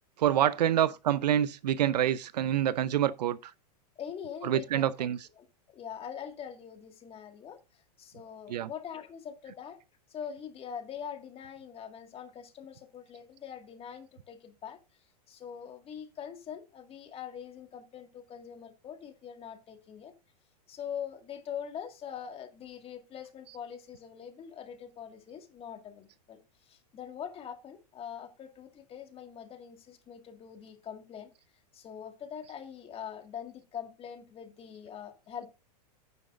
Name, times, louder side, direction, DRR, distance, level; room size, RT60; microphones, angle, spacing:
voice 1, 0.2-3.5 4.4-5.2 8.5-8.7, right 11 dB, 80° right, 0.7 m, -27 dB
voice 2, 4.0-9.8 10.1-14.8 15.3-20.1 20.7-31.3 31.7-35.5, left 8 dB, 30° left, 2.0 m, -43 dB
11.0 x 9.5 x 2.5 m
hypercardioid pair, 115°, 21 cm